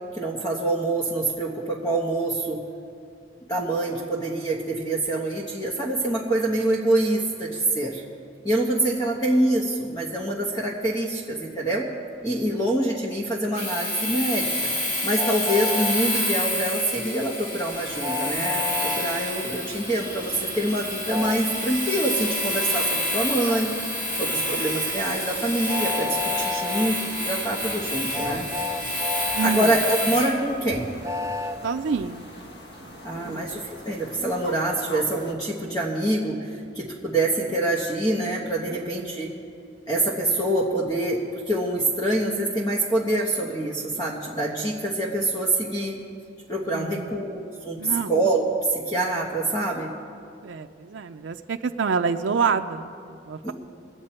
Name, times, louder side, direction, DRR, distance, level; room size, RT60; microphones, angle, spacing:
voice 1, 0.1-2.6 3.5-8.0 8.4-11.9 12.2-14.7 15.0-23.7 24.2-28.5 29.2-30.9 33.0-39.3 39.9-41.2 41.5-46.0 46.5-48.4 48.7-49.9 53.4-53.5, right 1 dB, 20° left, -3 dB, 1.2 m, -25 dB
Domestic sounds home sounds, 13.5-30.4, left 1 dB, 40° left, 2.4 m, -29 dB
Train, 15.1-15.9 18.0-19.0 21.1-21.4 23.5-23.6 25.7-26.9 28.1-29.8 31.0-31.6, left 4 dB, 15° right, 0.4 m, -30 dB
sound 1, 17.7-35.3, equal, 55° left, 1.3 m, -42 dB
voice 2, 29.3-29.7 31.6-32.3 32.8-33.5 46.7-47.2 47.7-48.1 50.4-53.5, right 5 dB, 75° right, 7 dB, 0.4 m, -28 dB
22.5 x 8.6 x 4.4 m, 2.5 s
head